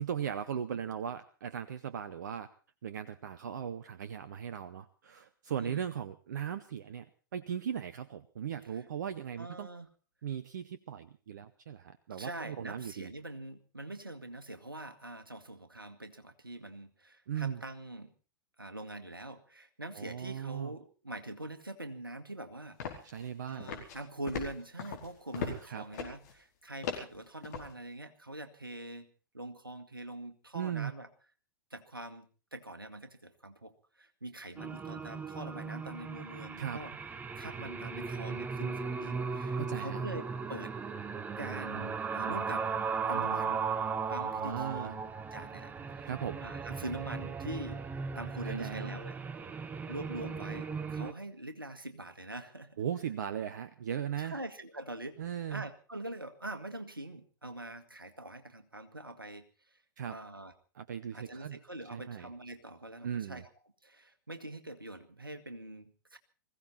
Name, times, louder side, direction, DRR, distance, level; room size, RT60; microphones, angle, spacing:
voice 1, 0.0-2.5 2.8-7.1 7.3-9.7 10.2-13.1 17.3-17.6 20.0-20.7 23.0-23.7 25.4-25.8 30.5-30.9 36.6-36.8 39.6-40.0 44.4-45.0 46.1-46.4 48.4-49.0 52.8-54.4 55.2-55.6 60.0-60.1 60.8-61.6 61.9-62.3 63.0-63.4, right 8 dB, 60° right, 14 dB, 0.9 m, -38 dB
voice 2, 9.4-9.9 12.2-18.1 18.6-23.1 23.5-29.1 29.3-31.1 31.7-32.3 32.5-36.9 37.4-40.7 41.4-42.7 43.1-43.6 44.1-46.1 46.4-47.8 48.2-49.2 49.9-52.8 54.2-55.2 55.5-59.5 59.7-59.8 60.1-60.5 61.1-63.5 63.8-66.2, right 1 dB, 85° right, 9 dB, 1.8 m, -44 dB
sound 1, 22.8-23.3 23.6-24.0 24.3-25.6 25.9-26.3 26.8-27.7, left 6 dB, 50° left, 4.7 m, -39 dB
sound 2, 34.6-51.1, right 5 dB, 15° right, 1.1 m, -37 dB
21.0 x 16.0 x 4.2 m, 0.36 s
figure-of-eight pair, 100°, 11 cm